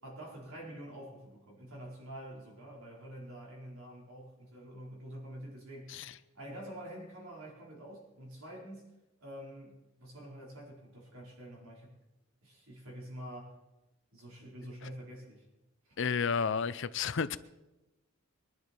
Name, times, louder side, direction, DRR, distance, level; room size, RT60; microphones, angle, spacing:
voice 1, 0.0-6.0 6.3-8.9 9.2-11.9 12.4-13.6 14.1-15.4 15.9-16.0, right 1 dB, 70° right, 4.4 m, -47 dB
voice 2, 16.0-17.4, left 6 dB, 55° left, 0.5 m, -31 dB
23.0 x 11.0 x 4.5 m
head